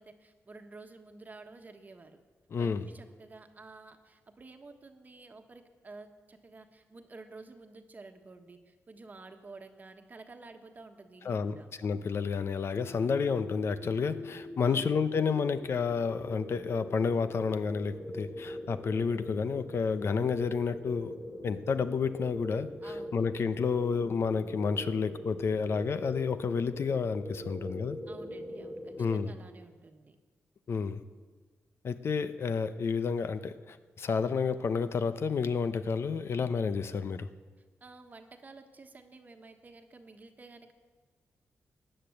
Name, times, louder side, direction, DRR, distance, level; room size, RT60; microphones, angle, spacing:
voice 1, 0.0-2.2 2.6-11.7 14.6-15.0 22.8-23.3 28.1-30.1 37.8-40.7, right 3 dB, 35° right, 6 dB, 1.3 m, -51 dB
voice 2, 2.5-2.8 11.2-21.1 21.4-22.7 23.1-28.0 29.0-29.3 30.7-31.0 31.8-37.3, left 5 dB, 55° left, 12 dB, 0.8 m, -30 dB
sound 1, 12.7-29.3, left 1 dB, 15° left, 2.7 m, -42 dB
15.5 x 10.0 x 7.9 m, 1.4 s
cardioid pair, 105°, 5 cm